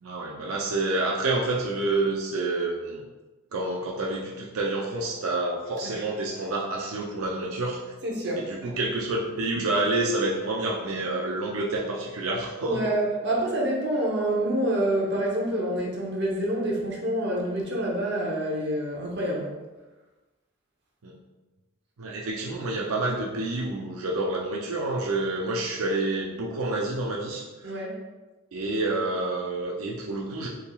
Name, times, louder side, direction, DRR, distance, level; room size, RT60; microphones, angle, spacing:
voice 1, 0.0-3.0 3.5-7.8 8.4-12.9 21.0-21.1 22.0-27.7 28.5-30.5, right 2 dB, 85° right, -2 dB, 0.5 m, -28 dB
voice 2, 8.0-8.8 12.6-19.6 27.6-28.0, right 1 dB, 55° right, -2 dB, 0.9 m, -27 dB
4.5 x 3.6 x 2.3 m, 1.2 s
head